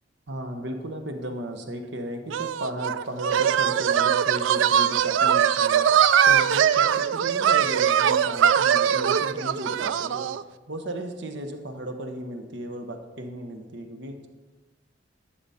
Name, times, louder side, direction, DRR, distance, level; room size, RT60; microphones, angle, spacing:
voice 1, 0.3-10.4 10.7-14.3, right 1 dB, 65° right, 5 dB, 1.0 m, -35 dB
sound 1, 2.3-10.4, right 8 dB, 85° right, 0.3 m, -21 dB
11.5 x 6.9 x 4.2 m, 1.2 s
head